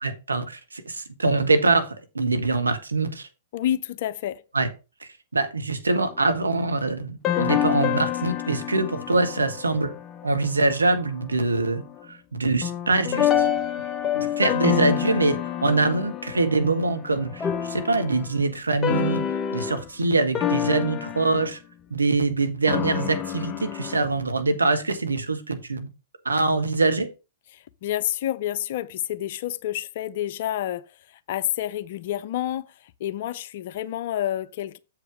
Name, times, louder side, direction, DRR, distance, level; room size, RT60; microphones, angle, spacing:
voice 1, 0.0-3.3 4.5-4.7 5.0-9.9 10.2-11.8 12.3-13.3 14.1-19.2 19.5-21.6 21.9-25.9 26.2-27.1, right 3 dB, 85° right, 1.3 m, -24 dB
voice 2, 3.5-4.4 27.5-34.8, left 12 dB, 55° left, 0.6 m, -29 dB
sound 1, 5.9-6.3 7.2-11.0 11.3-12.0 12.6-18.4 18.8-19.9 20.3-21.5 22.7-24.2, left 10 dB, 25° left, 0.8 m, -27 dB
7.5 x 4.9 x 5.0 m
figure-of-eight pair, 110°, 0 cm